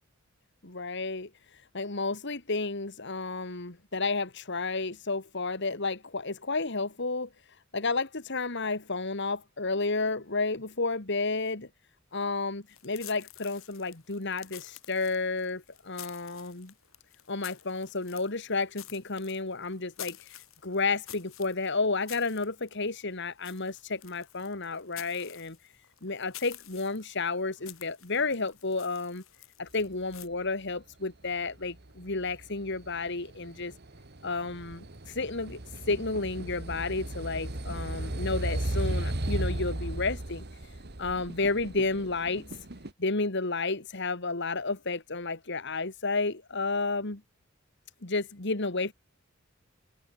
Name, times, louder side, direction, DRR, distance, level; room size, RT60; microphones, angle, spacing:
voice 1, 0.6-7.3 7.7-11.7 12.1-16.7 17.3-25.6 26.0-29.2 29.6-33.7 34.2-35.6 35.9-40.4 41.0-42.5 43.0-47.2 48.0-48.9, left 3 dB, 55° left, 2.1 m, -31 dB
sound 1, 12.7-30.3, left 13 dB, 80° left, 6.4 m, -50 dB
sound 2, 31.6-42.9, right 1 dB, 50° right, 1.9 m, -35 dB
head